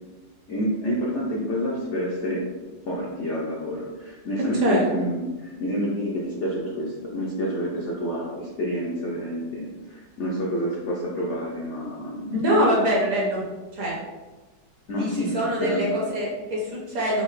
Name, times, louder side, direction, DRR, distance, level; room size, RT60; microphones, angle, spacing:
voice 1, 0.5-2.5 2.9-12.4 14.9-15.8, equal, 70° left, -4 dB, 0.6 m, -28 dB
voice 2, 12.3-13.4 13.7-14.0 15.0-17.2, equal, 60° right, -3 dB, 1.0 m, -24 dB
5.6 x 2.1 x 3.1 m, 1.2 s
omnidirectional pair, 2.0 m